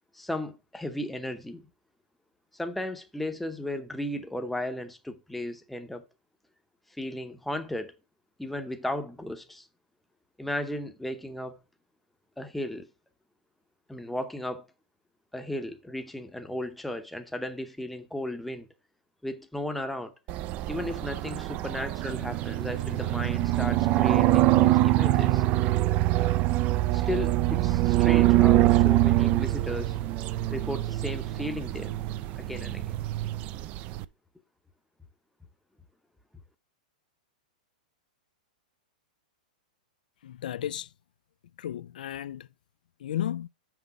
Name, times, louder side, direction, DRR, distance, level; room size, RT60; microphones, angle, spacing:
voice 1, 0.1-1.7 2.5-6.1 7.0-7.9 8.4-9.7 10.4-11.6 12.4-12.9 13.9-14.7 15.3-18.7 19.2-20.1 20.7-25.4 26.9-29.9 30.5-32.0 32.4-32.9, left 1 dB, ahead, 0.7 m, -35 dB
sound 1, 20.3-34.0, right 16 dB, 30° right, 0.3 m, -24 dB
voice 2, 40.2-40.9 41.6-42.5 43.0-43.5, left 11 dB, 80° left, 0.3 m, -33 dB
6.1 x 5.1 x 5.2 m
hypercardioid pair, 145°, 5 cm